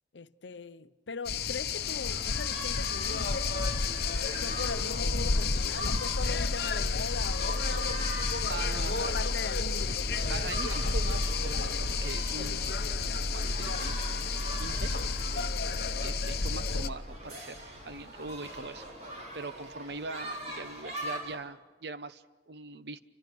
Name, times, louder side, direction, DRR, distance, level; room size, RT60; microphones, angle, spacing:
voice 1, 0.1-3.6 4.4-8.2 8.8-10.1, left 4 dB, 90° left, 0.7 m, -40 dB
sound 1, 1.2-16.9, left 5 dB, 60° left, 0.9 m, -32 dB
sound 2, 1.7-21.4, right 1 dB, 40° right, 5.4 m, -43 dB
sound 3, 6.6-17.0, equal, 20° right, 2.3 m, -35 dB
voice 2, 8.5-9.2 10.3-14.9 16.0-18.9 19.3-23.0, right 3 dB, 70° right, 0.9 m, -42 dB
29.0 x 25.5 x 6.1 m
head